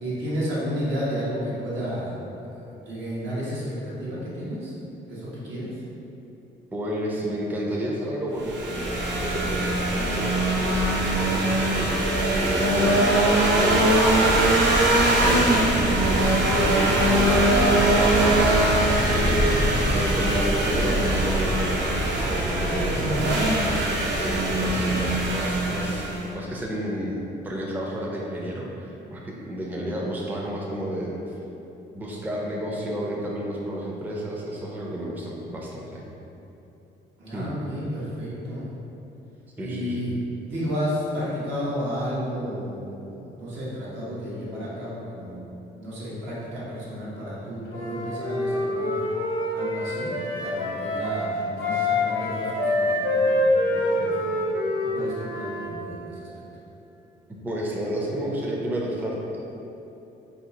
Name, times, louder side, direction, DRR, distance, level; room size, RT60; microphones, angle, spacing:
voice 1, 0.0-4.7 5.1-5.7 19.5-20.0 37.2-38.7 39.6-40.1 40.5-45.4 45.7-49.1 49.5-54.4 54.9-56.3, equal, 80° right, -8 dB, 1.1 m, -32 dB
voice 2, 6.7-14.7 15.1-23.3 24.2-31.2 31.9-36.0 37.3-37.5 39.6-40.2 57.4-59.4, equal, 10° right, -3 dB, 0.4 m, -31 dB
sound 1, 8.4-26.3, right 1 dB, 60° right, 0.6 m, -22 dB
Wind instrument woodwind instrument, 47.7-55.7, left 1 dB, 90° left, 0.7 m, -26 dB
2.7 x 2.4 x 3.9 m, 3.0 s
cardioid pair, 90°, 20 cm